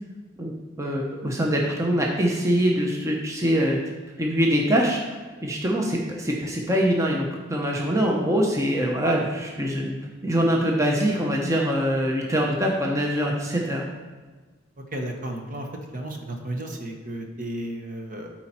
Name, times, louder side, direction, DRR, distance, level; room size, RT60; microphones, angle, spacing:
voice 1, 0.4-3.8 4.2-5.0 5.4-9.9 10.2-13.8, equal, 15° right, -1 dB, 0.9 m, -23 dB
voice 2, 14.9-18.3, right 1 dB, 40° right, 2 dB, 1.1 m, -33 dB
12.5 x 4.4 x 4.4 m, 1.3 s
head